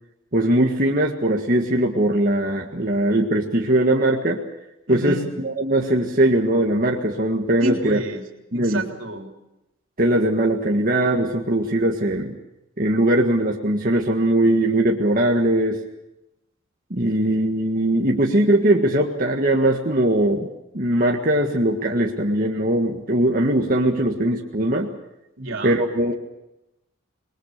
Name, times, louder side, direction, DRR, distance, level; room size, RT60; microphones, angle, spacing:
voice 1, 0.3-4.4 4.9-8.0 8.5-8.8 10.0-12.4 12.8-15.8 16.9-20.5 20.7-24.9 25.6-26.1, right 1 dB, 45° right, 0 dB, 1.7 m, -20 dB
voice 2, 4.9-5.3 7.6-8.2 8.5-9.3 25.4-25.8, right 1 dB, 75° right, 3 dB, 3.4 m, -29 dB
27.0 x 21.5 x 6.6 m, 0.90 s
head